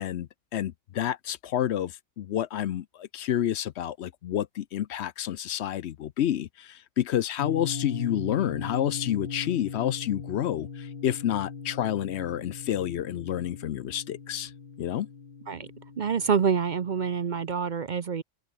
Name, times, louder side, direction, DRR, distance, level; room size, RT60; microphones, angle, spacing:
voice 1, 0.0-14.5 14.8-15.1, left 11 dB, 70° left, 0.9 m, -29 dB
sound 1, 7.4-17.6, left 5 dB, 45° left, 1.4 m, -39 dB
voice 2, 16.0-18.2, right 6 dB, 45° right, 0.7 m, -26 dB
omnidirectional pair, 1.2 m